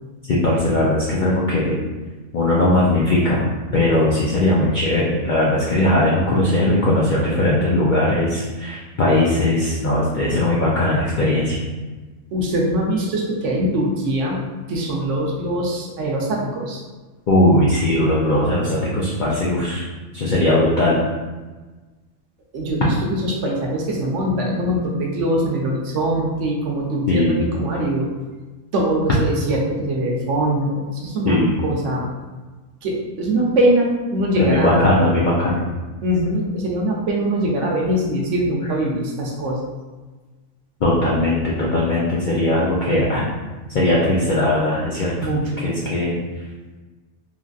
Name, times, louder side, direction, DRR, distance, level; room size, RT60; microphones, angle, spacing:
voice 1, 0.3-1.8 2.3-3.5 3.7-11.6 17.3-19.8 20.1-21.0 27.1-27.4 31.3-31.5 34.4-35.7 40.8-43.3 43.7-45.1 45.6-46.1, left 1 dB, 70° left, -5 dB, 0.4 m, -19 dB
voice 2, 12.3-14.4 14.7-16.8 22.5-28.1 28.7-32.1 32.8-34.9 36.0-39.6 45.2-45.7, right 1 dB, 70° right, -2 dB, 0.9 m, -22 dB
3.1 x 2.5 x 2.3 m, 1.3 s
omnidirectional pair, 1.4 m